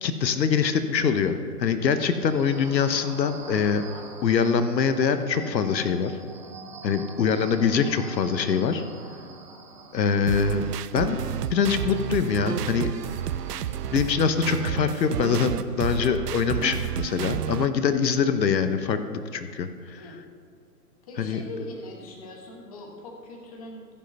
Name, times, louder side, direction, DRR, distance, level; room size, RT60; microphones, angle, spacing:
voice 1, 0.0-3.8 4.2-6.1 6.8-8.8 9.9-10.6 10.9-11.2 11.5-12.9 13.9-20.0 21.2-21.4, left 6 dB, 80° left, 10 dB, 0.9 m, -24 dB
sound 1, 1.8-15.2, right 3 dB, 30° right, 0.8 m, -45 dB
sound 2, 10.3-17.7, right 10 dB, 70° right, 0.6 m, -30 dB
voice 2, 21.0-23.9, left 2 dB, 20° left, 0 dB, 1.1 m, -41 dB
15.0 x 5.5 x 5.3 m, 2.3 s
hypercardioid pair, 165°, 50 cm